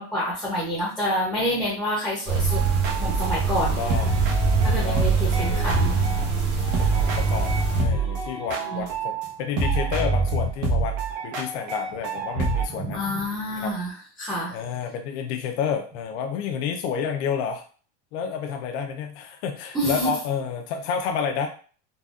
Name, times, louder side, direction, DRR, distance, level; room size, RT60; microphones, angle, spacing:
voice 1, 0.0-2.6 3.0-3.8 4.6-6.0 8.7-8.8 12.7-14.5 19.7-20.1, equal, ahead, -6 dB, 0.6 m, -28 dB
sound 1, 2.3-7.8, right 5 dB, 45° right, 0.8 m, -24 dB
sound 2, 2.5-6.4 6.7-9.3 9.6-12.6, right 3 dB, 80° right, 1.0 m, -26 dB
sound 3, 3.6-5.0 5.3-8.9, right 1 dB, 60° right, 1.3 m, -41 dB
voice 2, 3.8-4.2 4.8-5.7 6.8-7.5 7.8-11.0 11.2-13.0 13.6-13.7 14.5-17.6 18.1-21.5, left 7 dB, 70° left, 4 dB, 0.5 m, -30 dB
3.9 x 2.2 x 2.3 m, 0.40 s
supercardioid pair, 160°, 36 cm